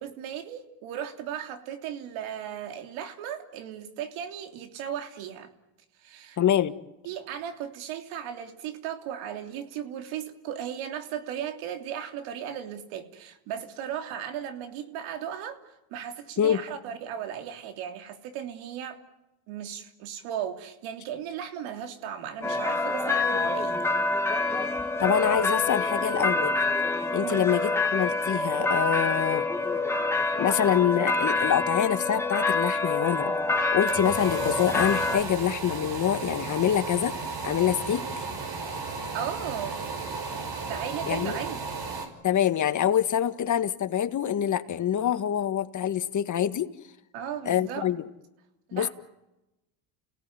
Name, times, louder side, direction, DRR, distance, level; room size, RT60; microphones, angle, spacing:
voice 1, 0.0-5.5 6.0-6.4 7.0-15.6 15.9-19.0 19.5-23.8 27.2-27.5 39.1-39.8 40.7-41.7 47.1-47.9 48.7-48.9, right 9 dB, 70° right, 6 dB, 3.3 m, -36 dB
voice 2, 6.4-6.7 16.4-16.6 25.0-26.6 27.1-29.4 30.4-33.3 33.7-37.1 37.4-38.3 41.0-41.4 42.2-46.7 47.4-48.0 48.7-48.9, left 10 dB, 35° left, 10 dB, 1.7 m, -25 dB
sound 1, 22.4-35.2, left 3 dB, 5° left, 2.8 m, -26 dB
sound 2, 33.5-42.1, right 4 dB, 45° right, 5.7 m, -34 dB
29.5 x 17.5 x 9.5 m, 0.95 s
supercardioid pair, 110°, 49 cm